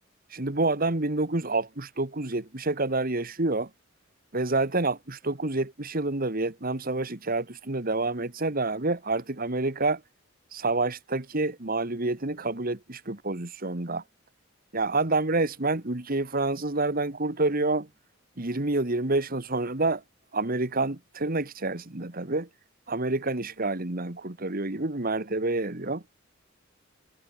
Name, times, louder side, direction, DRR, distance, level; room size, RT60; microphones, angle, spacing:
voice 1, 0.3-3.7 4.3-10.0 10.5-14.0 14.7-17.9 18.4-20.0 20.3-22.5 22.9-26.0, right 2 dB, 45° right, 1.9 m, -28 dB
head